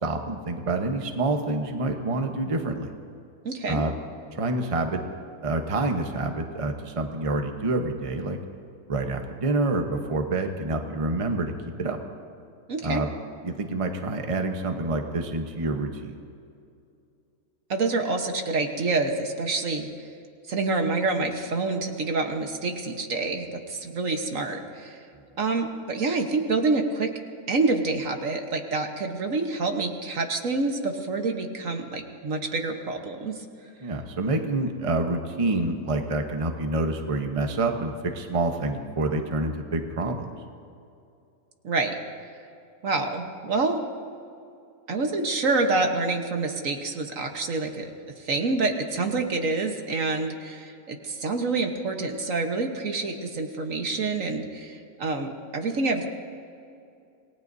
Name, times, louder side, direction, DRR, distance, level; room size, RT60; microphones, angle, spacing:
voice 1, 0.0-2.9 3.7-3.9 4.3-5.0 5.4-8.4 8.9-11.5 11.8-12.0 12.8-13.1 13.4-16.1 33.8-40.3, right 2 dB, 25° right, 4 dB, 1.0 m, -27 dB
voice 2, 3.4-3.8 12.7-13.0 17.7-19.9 20.5-25.0 25.4-27.1 27.5-33.4 41.6-42.0 42.8-43.8 44.9-47.9 48.2-56.1, right 3 dB, 65° right, 4 dB, 1.6 m, -27 dB
27.5 x 19.0 x 2.7 m, 2.5 s
omnidirectional pair, 1.5 m